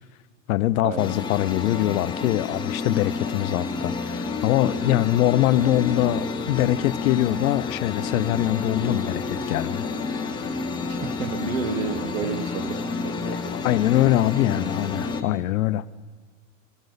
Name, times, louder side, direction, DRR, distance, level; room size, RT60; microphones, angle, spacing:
voice 1, 0.5-9.9 13.6-15.8, left 15 dB, 80° left, 16 dB, 0.6 m, -23 dB
sound 1, 1.0-15.2, left 4 dB, 10° left, 0.6 m, -29 dB
voice 2, 10.8-13.6, right 5 dB, 75° right, 9 dB, 1.5 m, -31 dB
17.0 x 14.0 x 4.0 m, 1.5 s
supercardioid pair, 145°, 41 cm